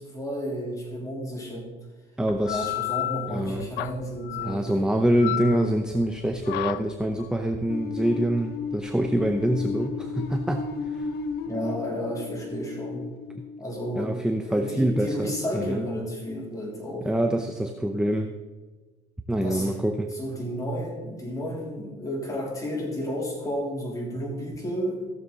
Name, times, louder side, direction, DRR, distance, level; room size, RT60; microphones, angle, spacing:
voice 1, 0.0-1.7 2.4-4.6 11.5-13.1 13.6-14.2 14.4-17.1 19.4-19.8 20.1-25.1, equal, 20° left, -2 dB, 3.4 m, -32 dB
voice 2, 2.2-2.7 3.3-3.7 4.4-11.1 13.3-13.4 14.0-15.8 17.1-18.3 19.3-20.1, right 1 dB, 5° right, 5 dB, 0.7 m, -25 dB
sound 1, 2.3-11.5, left 15 dB, 85° left, 0.4 m, -34 dB
sound 2, 7.7-14.6, left 5 dB, 70° left, 1.2 m, -34 dB
16.0 x 6.8 x 4.0 m, 1.3 s
cardioid pair, 110°, 17 cm